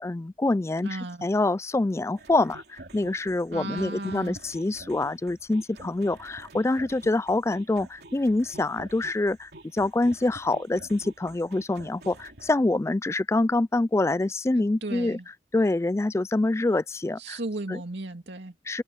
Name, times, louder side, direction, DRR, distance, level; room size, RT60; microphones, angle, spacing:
voice 1, 0.0-15.2 15.5-17.4 17.7-17.8 18.7-18.8, left 2 dB, 15° left, 0.3 m, -26 dB
voice 2, 0.8-1.3 3.5-4.4 14.5-15.3 17.2-18.5, right 2 dB, 75° right, 2.4 m, -35 dB
sound 1, 2.2-12.5, right 2 dB, 60° right, 3.6 m, -48 dB
head